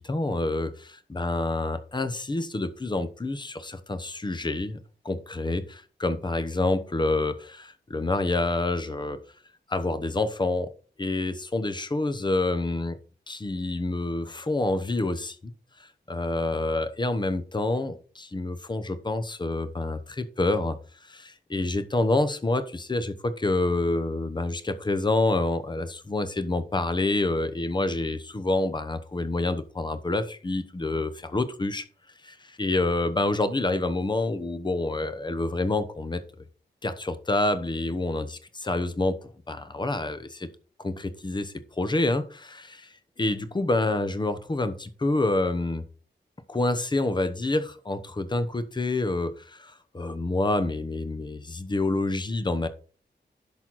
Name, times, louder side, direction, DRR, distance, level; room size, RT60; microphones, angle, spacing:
voice 1, 0.0-4.8 5.0-9.2 9.7-10.7 11.0-13.0 13.3-15.5 16.1-20.8 21.1-31.8 32.2-36.2 36.8-39.2 39.5-40.5 40.8-45.8 46.5-52.7, left 2 dB, 25° left, 12 dB, 0.9 m, -27 dB
10.5 x 6.2 x 4.1 m, 0.39 s
wide cardioid pair, 135°, 19 cm